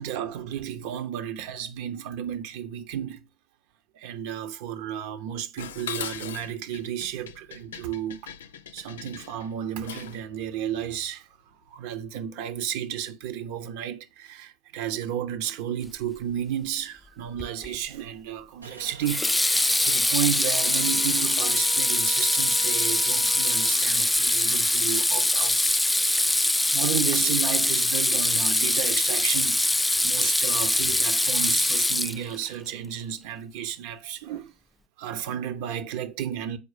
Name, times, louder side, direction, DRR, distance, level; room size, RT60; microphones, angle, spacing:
voice 1, 0.0-3.3 3.9-8.3 8.7-25.8 26.7-34.5 35.0-36.6, right 10 dB, 60° right, 1.1 m, -33 dB
Dishes pots and pans, 5.6-10.3, left 9 dB, 75° left, 0.5 m, -40 dB
Water tap faucet / Sink (filling or washing), 17.4-17.7 19.0-32.5, left 1 dB, 5° left, 0.4 m, -23 dB
sound 1, 18.6-25.1, right 5 dB, 90° right, 1.0 m, -41 dB
7.0 x 4.7 x 5.0 m
hypercardioid pair, 75°, 0 cm